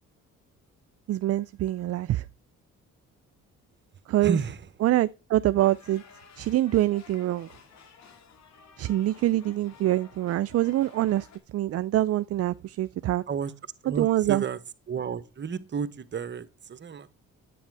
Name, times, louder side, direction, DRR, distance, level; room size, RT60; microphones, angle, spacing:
voice 1, 1.1-2.2 4.1-4.4 4.8-6.0 6.4-7.5 8.8-11.3 11.5-13.2 14.0-14.4, right 14 dB, 55° right, 0.4 m, -25 dB
voice 2, 4.2-4.7 13.3-13.5 13.8-14.6 14.9-17.1, right 6 dB, 35° right, 1.0 m, -31 dB
sound 1, 5.6-11.4, left 6 dB, 60° left, 2.3 m, -53 dB
10.0 x 8.4 x 4.7 m
cardioid pair, 90°, 30 cm